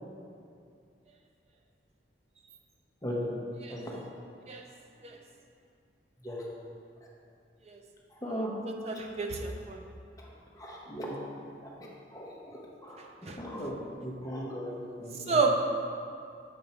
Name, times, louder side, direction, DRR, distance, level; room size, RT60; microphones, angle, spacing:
voice 1, 3.0-3.4 3.7-3.8 6.2-6.4 8.2-8.5 10.2-10.3 10.6-11.1 12.1-13.0 13.4-14.7 15.0-15.4, equal, 20° left, -4 dB, 0.9 m, -37 dB
voice 2, 8.8-9.8 13.3-13.4 15.3-15.6, right 4 dB, 35° right, 2 dB, 0.5 m, -30 dB
6.9 x 2.6 x 5.5 m, 2.4 s
head